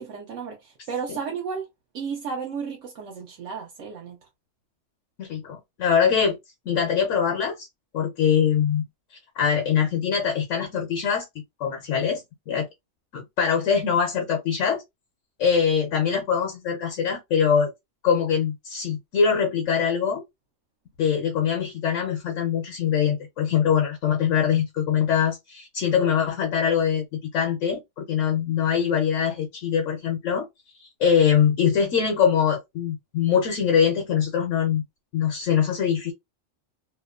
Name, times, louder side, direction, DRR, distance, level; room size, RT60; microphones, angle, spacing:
voice 1, 0.0-1.7 1.9-4.2, right 6 dB, 85° right, 1.0 m, -33 dB
voice 2, 5.2-6.4 6.7-7.7 7.9-8.8 9.4-11.3 11.6-12.7 13.1-14.8 15.4-17.7 18.0-20.2 21.0-30.5 30.8-34.8 35.1-36.1, left 7 dB, 85° left, 1.0 m, -23 dB
2.8 x 2.1 x 2.3 m
omnidirectional pair, 1.2 m